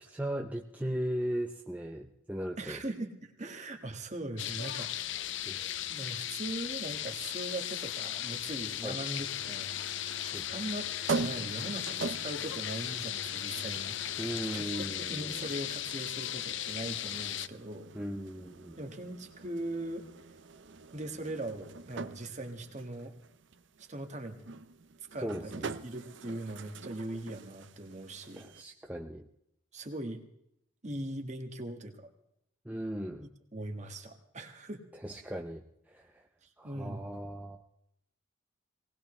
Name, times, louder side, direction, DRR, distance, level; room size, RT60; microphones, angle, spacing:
voice 1, 0.0-2.8 5.5-5.7 8.8-9.0 10.3-10.5 14.2-15.4 17.9-18.8 25.2-25.7 28.4-29.3 32.7-33.3 35.0-36.2 36.6-37.6, equal, 5° right, 2 dB, 0.6 m, -37 dB
voice 2, 2.6-5.2 5.9-9.7 10.5-10.8 11.2-14.0 14.5-14.7 15.1-17.9 18.8-20.1 20.9-23.1 23.8-24.6 25.1-28.5 29.7-30.2 30.8-32.1 33.2-34.8 36.6-37.1, right 1 dB, 35° right, 5 dB, 1.6 m, -40 dB
sound 1, 4.4-17.5, left 12 dB, 60° left, 0.5 m, -37 dB
sound 2, 8.9-28.6, right 4 dB, 60° right, 0.7 m, -43 dB
sound 3, 9.1-14.7, left 3 dB, 85° left, 1.5 m, -49 dB
19.5 x 19.0 x 3.3 m, 0.78 s
head